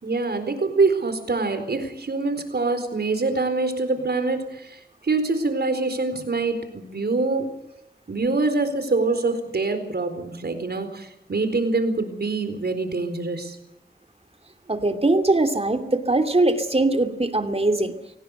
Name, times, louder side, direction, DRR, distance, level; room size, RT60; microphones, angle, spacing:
voice 1, 0.0-7.5 8.1-13.6, right 3 dB, 70° right, 9 dB, 4.3 m, -25 dB
voice 2, 14.7-17.9, right 2 dB, 35° right, 6 dB, 2.8 m, -21 dB
24.5 x 18.0 x 8.0 m, 0.82 s
wide cardioid pair, 65°, 17 cm